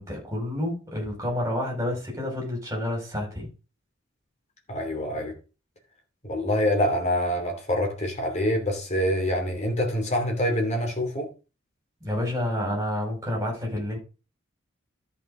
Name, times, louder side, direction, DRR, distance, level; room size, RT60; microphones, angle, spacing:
voice 1, 0.0-3.5 12.0-14.0, left 1 dB, 15° right, 5.1 m, -29 dB
voice 2, 4.7-5.3 6.2-11.3, equal, 35° left, 3.0 m, -26 dB
13.5 x 5.5 x 3.9 m
head